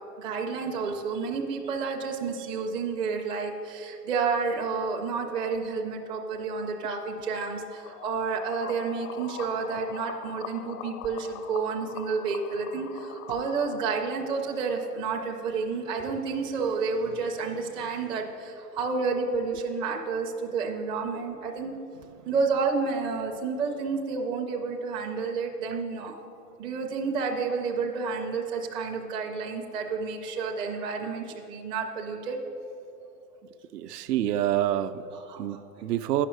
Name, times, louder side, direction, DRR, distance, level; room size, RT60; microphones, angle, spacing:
voice 1, 0.2-21.7 22.2-26.2 26.6-32.4 33.9-34.0 35.1-35.6, right 4 dB, 10° right, -1 dB, 0.4 m, -30 dB
sound 1, 7.7-13.8, left 9 dB, 60° left, 0.7 m, -42 dB
voice 2, 33.7-35.0 35.4-36.3, right 12 dB, 75° right, 10 dB, 0.6 m, -27 dB
9.6 x 5.8 x 6.4 m, 2.8 s
hypercardioid pair, 130°, 48 cm